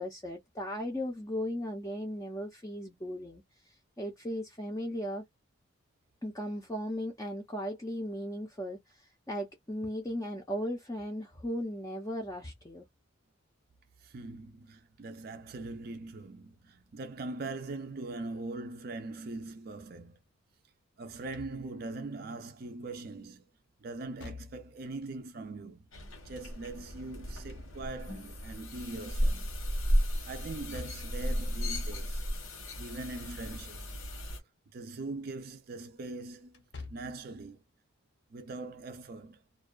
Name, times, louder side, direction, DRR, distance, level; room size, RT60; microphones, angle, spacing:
voice 1, 0.0-3.4 4.0-5.2 6.2-12.9, equal, 15° left, 0.5 m, -37 dB
voice 2, 14.0-20.2 21.0-23.5 23.8-25.9 26.2-29.5 30.2-32.2 32.8-33.9 34.7-36.6 36.9-37.6 38.3-39.4, right 3 dB, 45° right, 0.4 m, -41 dB
Slam / Thump thud, 21.1-22.0 24.0-24.9 27.1-28.2 30.5-31.3 33.4-34.0 34.4-34.5 36.5-37.3, left 4 dB, 55° left, 0.6 m, -48 dB
sound 1, 25.9-34.4, equal, 85° left, 1.1 m, -34 dB
2.5 x 2.2 x 2.2 m
head